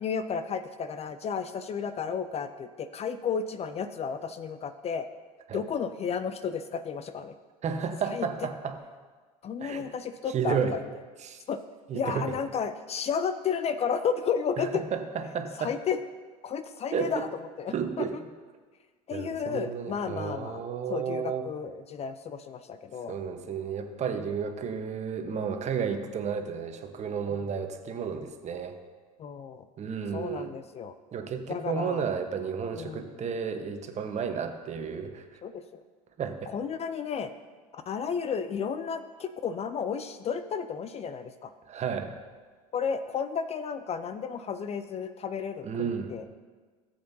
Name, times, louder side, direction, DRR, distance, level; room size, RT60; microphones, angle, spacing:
voice 1, 0.0-5.1 5.5-7.3 8.1-8.3 9.4-10.8 11.5-11.6 11.9-14.8 15.6-16.0 16.4-17.3 17.6-18.2 19.1-20.6 20.9-23.2 27.3-27.4 29.2-29.7 30.1-30.9 31.5-32.0 32.7-33.2 35.4-35.8 36.5-37.3 37.7-41.5 42.7-46.2, left 6 dB, 30° left, 10 dB, 0.6 m, -32 dB
voice 2, 7.6-8.8 9.6-9.9 10.3-10.8 11.2-11.4 11.9-12.4 14.6-15.7 16.9-17.3 17.7-18.1 19.1-21.4 23.1-28.8 29.8-30.6 31.1-35.4 36.2-36.5 41.7-42.1 45.6-46.2, right 6 dB, 35° right, 6 dB, 1.2 m, -32 dB
17.0 x 7.9 x 2.8 m, 1.4 s
figure-of-eight pair, 70°, 20 cm